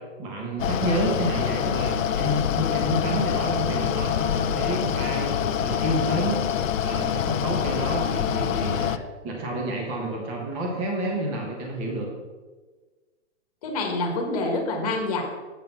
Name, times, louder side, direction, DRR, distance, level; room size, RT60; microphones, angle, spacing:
voice 1, 0.0-6.4 6.8-12.1, right 1 dB, 15° right, 0 dB, 1.2 m, -29 dB
Mechanical fan, 0.6-9.0, left 9 dB, 85° left, 0.7 m, -26 dB
voice 2, 13.6-15.2, left 2 dB, 30° left, 2 dB, 1.5 m, -26 dB
7.9 x 6.7 x 5.6 m, 1.3 s
hypercardioid pair, 170°, 38 cm